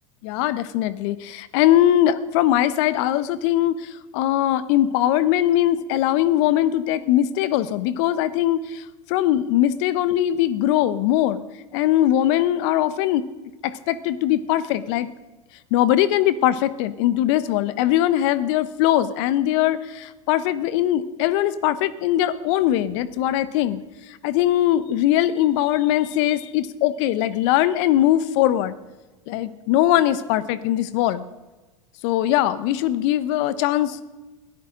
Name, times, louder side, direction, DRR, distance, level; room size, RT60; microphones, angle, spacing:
voice 1, 0.2-11.4 11.7-13.3 13.6-15.1 15.7-28.8 29.3-31.2 32.0-34.2, left 12 dB, 55° left, 16 dB, 0.9 m, -21 dB
21.0 x 13.5 x 3.8 m, 1.2 s
hypercardioid pair, 90°, 17 cm